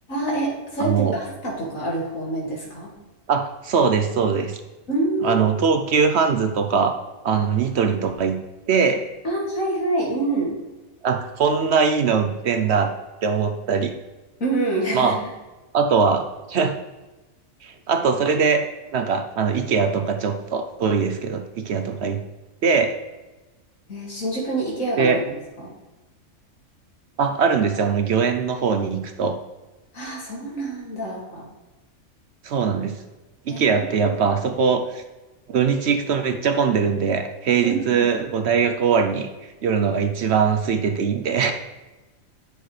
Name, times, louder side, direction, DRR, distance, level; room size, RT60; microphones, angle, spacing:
voice 1, 0.1-2.9 4.9-5.4 9.2-10.5 14.4-15.1 23.9-25.7 29.9-31.5 33.5-34.1 37.6-38.1, right 2 dB, 75° left, -3 dB, 2.7 m, -26 dB
voice 2, 0.8-1.2 3.3-4.6 5.2-7.0 7.2-8.4 8.7-9.0 11.0-12.9 13.2-13.9 14.9-15.2 15.7-16.7 17.6-18.6 18.9-22.2 22.6-23.0 25.0-25.2 27.2-29.4 32.4-33.0 33.5-35.0 35.5-39.3 39.6-41.5, right 6 dB, 60° right, 7 dB, 0.8 m, -21 dB
9.9 x 6.3 x 3.2 m, 1.1 s
omnidirectional pair, 1.4 m